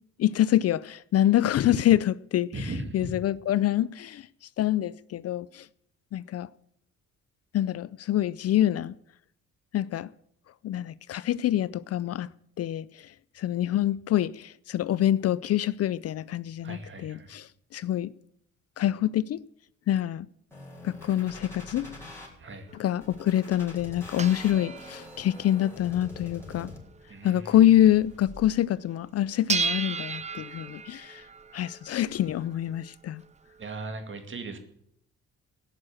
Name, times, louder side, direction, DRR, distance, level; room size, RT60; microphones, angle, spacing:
voice 1, 0.2-4.3 4.6-5.7 6.1-6.5 7.5-8.9 9.7-10.1 10.6-12.3 12.6-18.1 18.8-19.4 19.9-20.3 20.8-21.9 22.7-26.7 27.2-31.2 31.5-33.2, left 12 dB, 55° left, 0.4 m, -26 dB
voice 2, 2.5-3.1 16.6-17.3 22.4-22.7 27.1-27.6 33.6-34.6, right 2 dB, 40° right, 2.3 m, -37 dB
sound 1, 20.5-22.3 23.0-27.0 27.5-28.5, left 2 dB, 10° left, 5.1 m, -45 dB
sound 2, 22.7-28.2 28.5-28.6 28.9-33.8, right 5 dB, 25° right, 0.6 m, -36 dB
16.5 x 6.4 x 8.7 m
cardioid pair, 90°, 30 cm